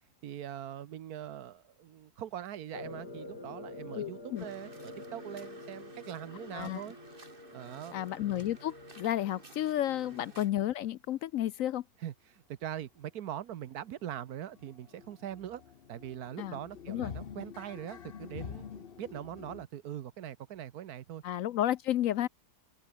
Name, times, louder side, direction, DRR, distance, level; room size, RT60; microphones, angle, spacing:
voice 1, 0.2-7.0 7.5-8.0 9.9-10.1 12.0-15.6 15.9-21.2, right 11 dB, 70° right, 1.3 m, -42 dB
sound 1, 2.7-9.5, left 2 dB, 85° left, 6.4 m, -48 dB
voice 2, 3.9-4.4 6.4-6.8 7.9-11.8 16.4-16.6 16.9-17.1 21.2-22.3, left 12 dB, 70° left, 0.9 m, -32 dB
sound 2, 4.4-10.5, right 2 dB, 35° right, 3.1 m, -54 dB
sound 3, 12.8-12.9 13.2-13.3 13.6-19.6, left 7 dB, 45° left, 1.0 m, -47 dB
omnidirectional pair, 1.7 m